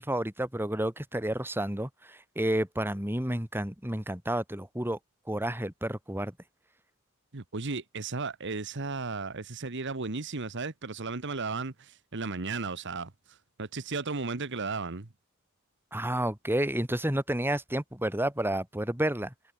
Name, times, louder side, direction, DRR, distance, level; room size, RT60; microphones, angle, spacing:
voice 1, 0.0-5.0 5.3-6.3 15.9-19.3, right 1 dB, 10° right, 2.8 m, -30 dB
voice 2, 7.3-15.1, right 4 dB, 55° right, 1.3 m, -35 dB
head